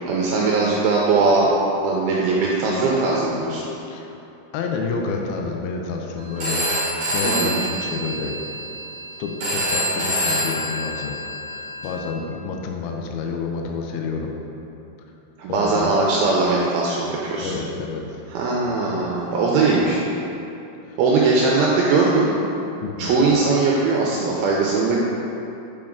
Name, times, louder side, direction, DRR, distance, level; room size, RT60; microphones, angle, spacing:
voice 1, 0.1-1.5 1.8-3.6 7.2-7.5 15.4-17.5 18.3-20.0 21.0-22.3 23.0-25.0, right 3 dB, 85° right, -3 dB, 2.2 m, -20 dB
voice 2, 4.5-8.6 9.2-11.2 11.5-14.4 15.5-15.9 17.4-18.2 20.8-21.0 22.8-23.2, left 4 dB, 80° left, 1 dB, 2.2 m, -29 dB
Telephone, 6.4-12.0, equal, 60° right, 1.6 m, -26 dB
7.3 x 4.9 x 3.6 m, 2.9 s
omnidirectional pair, 4.7 m